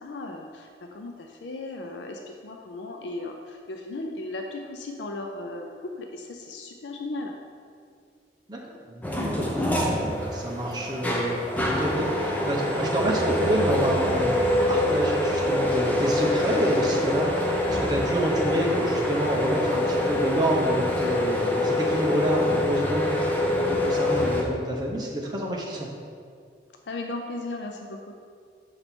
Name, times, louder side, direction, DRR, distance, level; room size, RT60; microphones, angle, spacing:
voice 1, 0.0-7.3 26.9-28.1, left 2 dB, 85° left, 3 dB, 0.5 m, -36 dB
voice 2, 8.9-25.9, right 1 dB, 25° right, -1 dB, 0.8 m, -28 dB
sound 1, 9.0-24.4, left 1 dB, 10° left, 0.6 m, -25 dB
6.6 x 4.4 x 4.3 m, 2.2 s
head